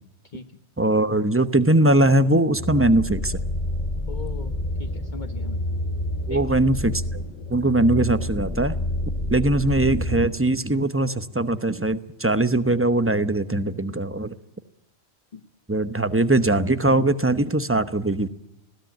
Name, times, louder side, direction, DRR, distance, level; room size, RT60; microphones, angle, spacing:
voice 1, 0.2-0.6 4.1-5.6 6.3-6.6 15.3-15.4, left 5 dB, 45° left, 6 dB, 1.2 m, -40 dB
voice 2, 0.8-3.4 6.3-7.2 7.5-8.8 9.3-14.3 15.7-18.3, right 2 dB, 15° right, 12 dB, 0.9 m, -21 dB
sound 1, 2.6-10.3, left 1 dB, 30° left, 3.2 m, -28 dB
20.5 x 17.0 x 9.1 m, 0.85 s
omnidirectional pair, 1.1 m